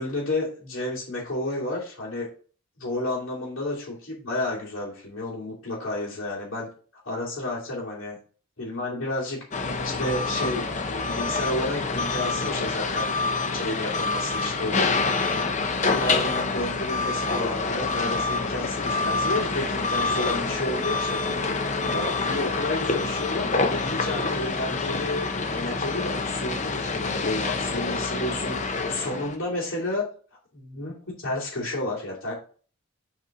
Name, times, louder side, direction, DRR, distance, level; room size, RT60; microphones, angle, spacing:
voice 1, 0.0-2.3 2.8-6.7 7.0-8.2 8.6-9.4 9.8-13.2 13.5-14.9 15.9-21.2 21.8-30.0 30.5-32.3, left 2 dB, 70° left, -5 dB, 2.6 m, -31 dB
sound 1, 9.5-29.4, left 3 dB, 35° left, 0.7 m, -27 dB
7.5 x 4.2 x 3.7 m, 0.41 s
head